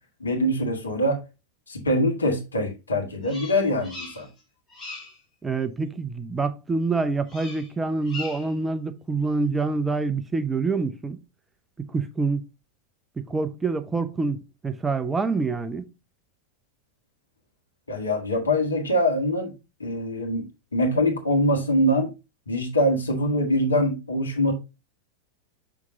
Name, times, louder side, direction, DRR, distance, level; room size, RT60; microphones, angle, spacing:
voice 1, 0.2-1.2 1.7-4.3 17.9-19.5 19.8-20.4 20.7-22.1 22.5-24.5, equal, 75° left, 1.6 m, -23 dB
Bird vocalization bird call bird song, 3.2-4.4 4.7-5.2 7.3-7.7 8.0-8.6, left 3 dB, 20° left, 4.0 m, -40 dB
voice 2, 5.4-11.2 11.9-12.4 13.3-14.4 14.6-15.9, right 4 dB, 10° right, 0.7 m, -26 dB
7.3 x 6.0 x 2.6 m
figure-of-eight pair, 90°, 0 cm